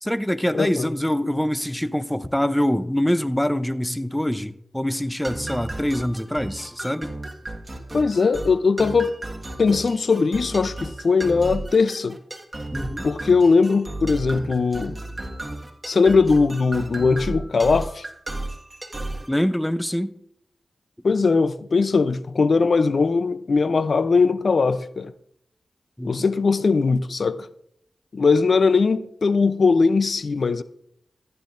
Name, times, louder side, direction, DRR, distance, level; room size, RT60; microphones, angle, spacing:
voice 1, 0.0-7.2 12.7-13.1 19.3-20.1 26.0-26.2, equal, 5° left, 0.7 m, -24 dB
voice 2, 0.5-0.9 7.9-9.1 9.6-12.2 13.0-15.0 15.9-18.1 21.0-25.1 26.0-27.5 28.1-30.6, left 4 dB, 65° left, 0.6 m, -20 dB
sound 1, 5.2-19.3, right 2 dB, 30° right, 1.6 m, -34 dB
14.5 x 10.5 x 2.6 m
cardioid pair, 40°, 0 cm